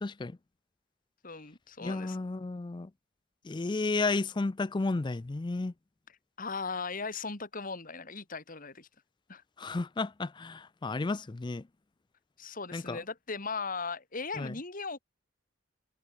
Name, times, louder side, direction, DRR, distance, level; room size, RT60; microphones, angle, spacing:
voice 1, 0.0-0.4 1.8-2.9 3.4-5.7 9.6-11.6 12.7-13.0 14.4-14.5, left 3 dB, 25° left, 0.4 m, -32 dB
voice 2, 1.2-2.2 6.4-8.9 9.3-9.4 12.4-15.0, left 4 dB, 45° left, 2.4 m, -38 dB
head